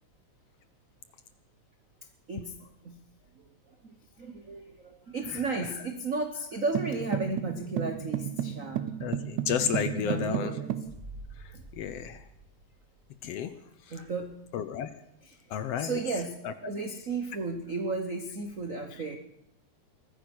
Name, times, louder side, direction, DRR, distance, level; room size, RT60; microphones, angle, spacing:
voice 1, 3.8-8.9 9.9-10.7 11.5-11.6 13.9-14.4 15.2-15.4 15.7-19.2, right 3 dB, 60° right, 6 dB, 0.8 m, -34 dB
sound 1, 6.7-10.9, right 11 dB, 80° right, 2.2 m, -33 dB
voice 2, 9.0-10.5 11.8-12.2 13.2-13.5 14.5-14.9 15.5-15.9, left 9 dB, 70° left, 12 dB, 1.6 m, -31 dB
sound 2, 10.8-13.5 13.8-13.9, right 2 dB, 5° right, 2.8 m, -48 dB
22.5 x 10.0 x 6.2 m, 0.78 s
omnidirectional pair, 3.3 m